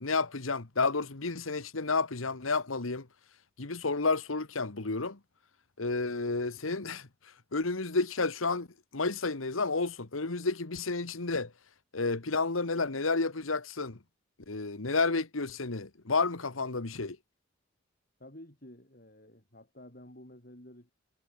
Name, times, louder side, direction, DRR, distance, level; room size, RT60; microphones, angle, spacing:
voice 1, 0.0-3.1 3.6-5.2 5.8-7.1 7.5-8.7 8.9-11.5 11.9-14.0 14.5-17.2, left 3 dB, 90° left, 1.6 m, -31 dB
voice 2, 18.2-20.9, left 1 dB, 45° left, 5.6 m, -51 dB
head